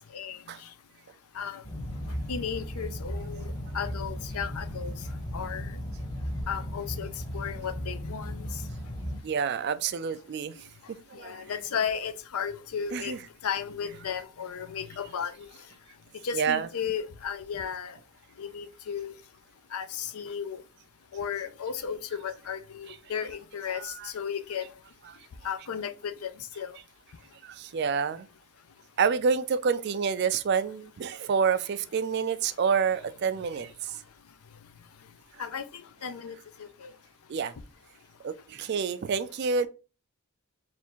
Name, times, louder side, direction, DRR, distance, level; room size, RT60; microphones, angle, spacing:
voice 1, 0.1-0.7 1.3-1.6 2.3-4.9 5.3-5.7 6.5-8.6 11.1-13.2 13.4-15.5 16.2-18.0 18.4-19.2 19.7-20.6 21.1-24.7 25.4-26.8 35.4-36.9, left 7 dB, 80° left, 0.5 m, -35 dB
sound 1, 1.6-9.2, equal, 15° left, 0.8 m, -36 dB
voice 2, 9.2-11.4 12.9-13.2 16.4-16.7 23.7-24.1 27.4-28.3 29.0-34.0 37.3-37.5 38.2-39.7, right 6 dB, 50° right, 0.3 m, -28 dB
3.4 x 2.5 x 4.4 m
head